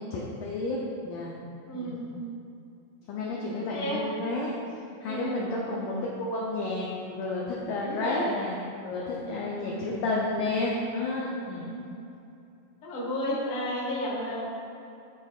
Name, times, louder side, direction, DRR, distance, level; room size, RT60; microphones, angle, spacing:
voice 1, 0.0-1.3 1.7-2.0 3.1-4.5 5.0-8.5 8.8-11.7, left 2 dB, 80° left, -4 dB, 1.8 m, -31 dB
voice 2, 1.6-2.1 3.7-4.0 5.0-5.6 7.8-8.4 9.5-9.9 11.6-11.8 12.8-14.4, equal, 60° left, -5 dB, 1.2 m, -33 dB
11.5 x 4.4 x 2.4 m, 2.7 s
omnidirectional pair, 4.3 m